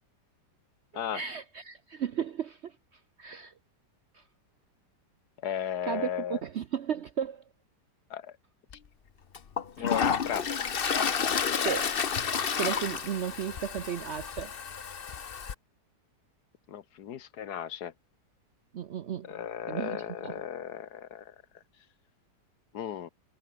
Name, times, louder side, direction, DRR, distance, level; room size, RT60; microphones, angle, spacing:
voice 1, 1.1-2.8 3.2-3.5 4.1-4.2 5.8-7.4 9.8-9.9 11.6-11.9 12.6-14.5 18.7-19.3 19.7-20.4, right 8 dB, 60° right, 0.7 m, -34 dB
voice 2, 5.4-6.4 8.1-8.3 9.8-10.4 16.7-17.9 19.3-21.2 22.7-23.1, left 9 dB, 70° left, 1.5 m, -35 dB
Toilet flush, 8.7-8.8 9.3-15.5, left 7 dB, 40° left, 1.0 m, -30 dB
omnidirectional pair, 1.8 m